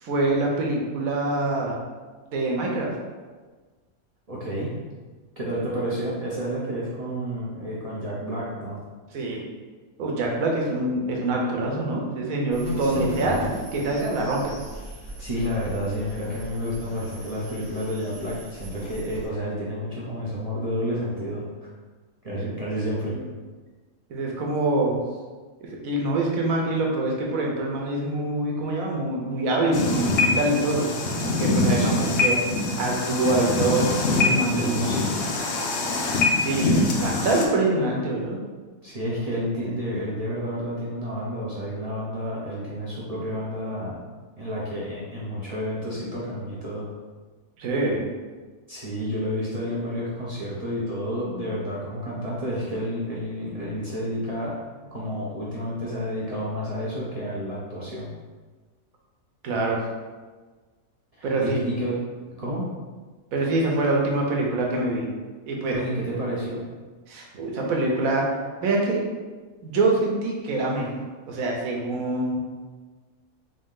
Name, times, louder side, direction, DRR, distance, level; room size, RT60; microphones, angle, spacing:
voice 1, 0.0-1.8 2.3-2.9 9.1-9.4 10.0-13.4 13.7-14.5 23.1-23.2 24.1-25.0 25.6-30.9 31.2-32.4 32.8-33.9 34.2-34.7 36.4-38.4 47.6-48.0 59.4-59.8 61.2-61.6 63.3-65.1 65.5-65.8 67.1-68.2 68.6-69.0 69.6-70.9 71.3-72.4, right 2 dB, 85° right, -1 dB, 1.2 m, -25 dB
voice 2, 4.3-4.7 5.4-8.8 12.8-13.1 15.2-21.7 22.2-23.2 31.7-32.1 34.5-35.2 38.8-46.9 48.7-54.6 54.9-58.1 61.1-62.0 62.4-62.6 65.7-66.6, equal, 45° right, -7 dB, 0.5 m, -30 dB
sound 1, 12.5-19.3, equal, 10° left, 1.1 m, -37 dB
sound 2, 29.7-37.5, left 2 dB, 60° left, 0.7 m, -24 dB
3.4 x 2.7 x 3.6 m, 1.4 s
omnidirectional pair, 1.4 m